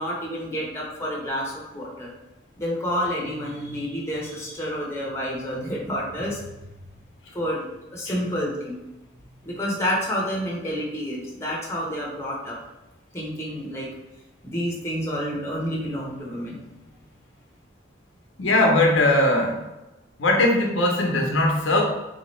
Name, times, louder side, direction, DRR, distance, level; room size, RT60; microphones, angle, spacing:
voice 1, 0.0-2.1 2.6-6.4 7.3-7.6 7.9-8.8 9.4-12.6 13.1-13.9 14.4-16.6, equal, 15° left, -4 dB, 0.9 m, -29 dB
voice 2, 18.4-19.6 20.2-21.8, left 1 dB, 80° left, 0 dB, 0.7 m, -20 dB
3.7 x 2.8 x 3.1 m, 1.0 s
head